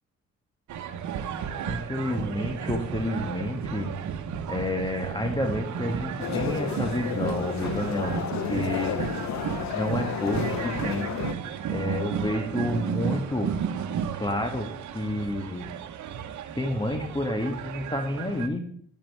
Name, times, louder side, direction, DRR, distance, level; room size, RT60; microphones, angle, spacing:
sound 1, 0.7-18.5, right 7 dB, 70° right, 1.2 m, -33 dB
voice 1, 1.7-3.9 4.5-8.1 8.5-9.0 9.7-11.1 11.7-13.5 14.1-15.7 16.5-18.6, left 1 dB, 15° left, 5 dB, 1.5 m, -29 dB
sound 2, 6.2-11.3, left 10 dB, 65° left, 0.8 m, -32 dB
10.0 x 8.7 x 4.7 m, 0.62 s
cardioid pair, 90°, 30 cm